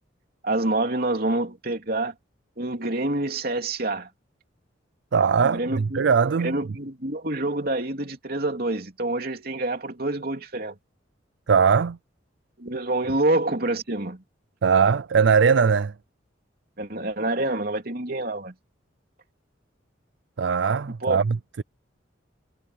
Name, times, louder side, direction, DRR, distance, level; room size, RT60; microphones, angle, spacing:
voice 1, 0.4-2.1 2.6-4.1 5.4-6.0 6.4-10.7 12.6-14.2 16.8-18.5 21.0-21.2, right 2 dB, 50° right, 3.2 m, -27 dB
voice 2, 5.1-6.6 11.5-12.0 14.6-15.9 20.4-21.6, right 6 dB, 70° right, 0.5 m, -20 dB
head